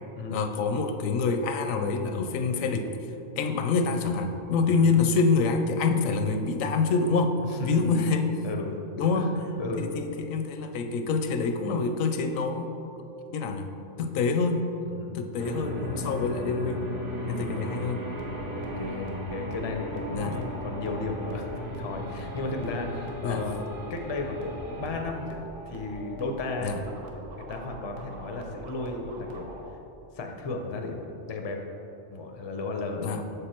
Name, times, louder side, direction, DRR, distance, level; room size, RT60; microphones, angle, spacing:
voice 1, 0.3-2.9 3.4-7.4 7.6-8.3 9.0-9.3 9.8-9.9 10.2-12.7 13.3-13.7 14.0-14.6 15.1-16.9 17.3-18.0 20.1-20.4 23.2-23.5 26.6-26.8 33.0-33.2, left 4 dB, 85° left, 6 dB, 1.0 m, -26 dB
voice 2, 4.7-5.0 7.4-7.8 8.4-8.7 9.1-9.9 14.9-15.4 17.2-17.6 18.5-23.6 23.9-26.8 27.4-29.5 30.1-31.0 31.3-31.6 32.1-33.2, left 3 dB, 40° left, 3 dB, 0.4 m, -34 dB
sound 1, 15.4-25.0, left 1 dB, 45° right, 1.0 m, -36 dB
sound 2, 18.0-29.7, right 1 dB, 80° right, 1.2 m, -44 dB
6.7 x 5.2 x 4.3 m, 2.9 s
omnidirectional pair, 1.3 m